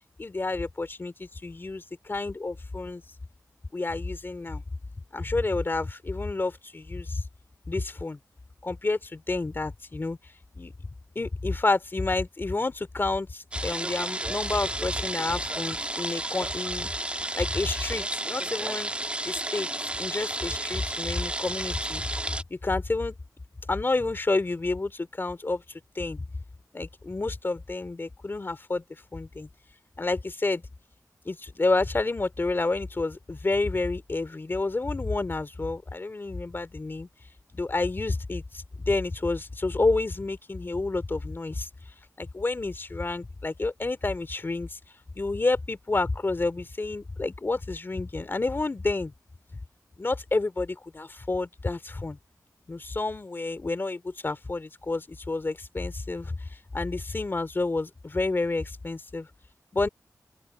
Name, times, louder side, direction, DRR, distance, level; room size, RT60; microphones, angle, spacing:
voice 1, 0.2-3.0 3.7-4.6 5.1-7.2 7.7-8.2 8.6-10.2 10.5-10.7 11.1-16.9 17.3-18.9 19.2-19.7 20.0-22.1 22.5-23.2 23.7-26.3 26.7-28.8 29.1-29.5 30.0-30.6 31.2-37.1 37.5-41.7 42.2-44.8 45.1-49.1 50.0-52.2 52.7-59.3 59.7-59.9, left 3 dB, 35° left, 2.9 m, -29 dB
sound 1, 13.5-22.4, right 1 dB, 20° right, 1.5 m, -32 dB
open air
wide cardioid pair, 90°, 6 cm